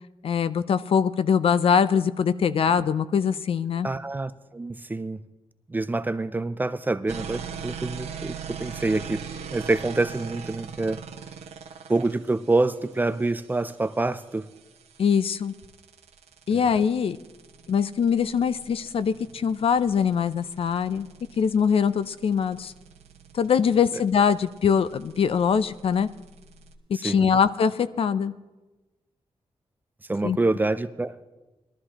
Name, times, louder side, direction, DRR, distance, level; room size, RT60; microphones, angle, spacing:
voice 1, 0.2-3.9 15.0-15.5 16.5-17.2 17.7-21.1 21.4-22.7 23.3-26.1 27.0-28.3 30.2-30.4, left 7 dB, 60° left, 15 dB, 0.4 m, -23 dB
voice 2, 3.8-5.2 5.7-11.0 11.9-14.5 16.5-16.6 26.9-27.3 30.1-31.3, right 2 dB, 15° right, 13 dB, 0.4 m, -27 dB
sound 1, 7.1-26.7, right 7 dB, 85° right, 1.0 m, -42 dB
21.5 x 13.0 x 2.9 m, 1.1 s
wide cardioid pair, 155°, 11 cm